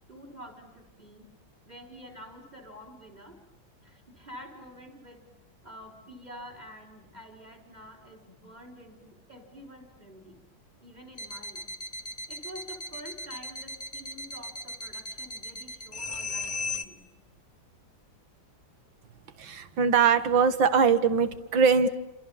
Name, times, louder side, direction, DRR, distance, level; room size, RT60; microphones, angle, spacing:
voice 1, 0.1-1.3 1.7-3.4 3.8-5.2 5.6-10.4 10.8-11.7 12.3-17.1, equal, 20° right, 5 dB, 5.3 m, -48 dB
sound 1, 11.2-16.9, left 2 dB, 25° left, 1.0 m, -37 dB
voice 2, 19.4-21.9, right 6 dB, 80° right, 11 dB, 2.3 m, -22 dB
29.5 x 27.0 x 7.3 m, 1.0 s
omnidirectional pair, 2.1 m